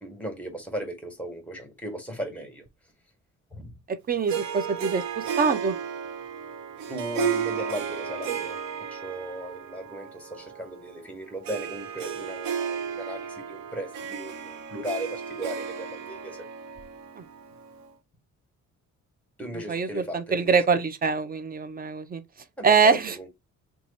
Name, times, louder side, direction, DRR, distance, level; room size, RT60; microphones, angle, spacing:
voice 1, 0.0-2.6 3.5-3.7 6.9-8.6 8.9-16.5 19.4-20.6 22.6-23.3, right 1 dB, 5° left, 1.4 m, -36 dB
voice 2, 3.9-5.8 17.2-17.3 19.7-22.2 22.6-23.2, right 5 dB, 30° right, 0.6 m, -24 dB
Harp, 4.3-17.9, right 7 dB, 70° right, 0.7 m, -34 dB
2.8 x 2.4 x 4.0 m
cardioid pair, 90°, 30 cm